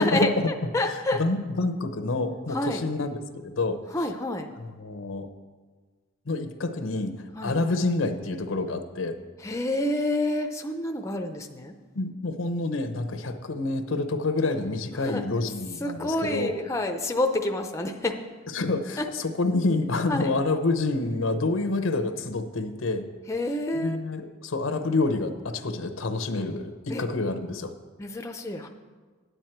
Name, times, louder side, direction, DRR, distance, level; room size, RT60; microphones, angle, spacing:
voice 1, 0.0-1.2 2.5-2.8 3.9-4.5 7.3-7.6 9.4-11.7 15.0-15.2 15.8-18.2 19.0-19.1 20.1-20.3 23.3-24.0 26.9-27.0 28.0-28.7, left 1 dB, 15° left, 5 dB, 0.6 m, -28 dB
voice 2, 0.6-3.8 4.6-5.3 6.3-9.2 11.9-16.5 18.5-23.1 23.7-27.7, left 2 dB, 85° left, 9 dB, 0.8 m, -28 dB
9.8 x 9.2 x 4.5 m, 1.4 s
head